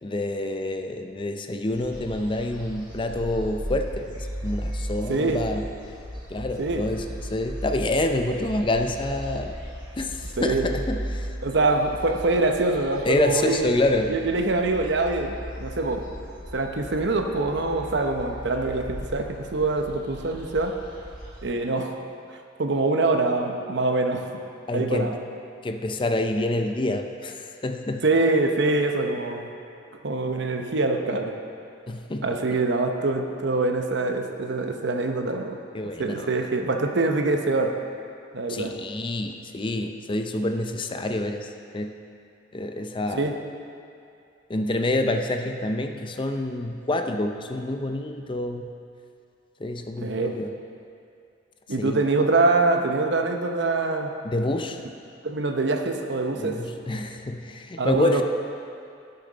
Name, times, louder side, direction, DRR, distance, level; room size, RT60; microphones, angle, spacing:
voice 1, 0.0-5.7 6.3-9.6 10.0-11.3 13.1-14.2 24.7-25.1 25.6-28.1 31.9-32.3 35.7-36.3 38.5-41.9 42.5-43.3 44.5-48.7 49.6-50.5 51.8-52.0 54.2-54.8 56.4-58.2, left 2 dB, 25° left, 5 dB, 0.5 m, -27 dB
sound 1, 1.7-21.4, equal, 25° right, 2.3 m, -37 dB
voice 2, 5.1-5.4 6.6-6.8 10.4-10.7 11.4-13.8 14.1-16.0 16.5-20.8 21.4-22.0 22.6-24.2 24.7-25.2 28.0-29.5 30.0-31.3 32.2-35.6 36.0-37.8 38.3-38.7 43.1-43.4 50.0-50.3 51.7-54.1 55.2-56.6 57.8-58.2, right 3 dB, 65° right, 4 dB, 0.8 m, -24 dB
16.0 x 6.8 x 4.0 m, 2.5 s
head